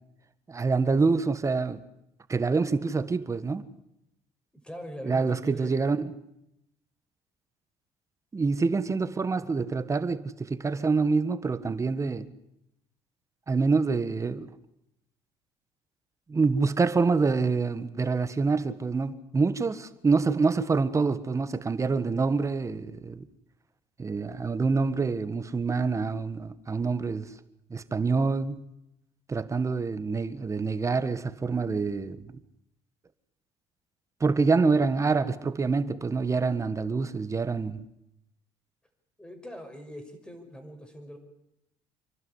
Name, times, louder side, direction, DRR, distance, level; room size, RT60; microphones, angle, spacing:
voice 1, 0.5-1.8 2.3-3.7 5.0-6.1 8.3-12.3 13.5-14.5 16.3-23.3 24.0-27.3 27.7-28.6 29.3-32.4 34.2-37.8, right 4 dB, 25° right, 1.5 m, -26 dB
voice 2, 4.6-5.8 8.8-8.9 39.2-41.2, equal, 10° left, 6.3 m, -42 dB
27.0 x 12.0 x 9.8 m
supercardioid pair, 85°, 12 cm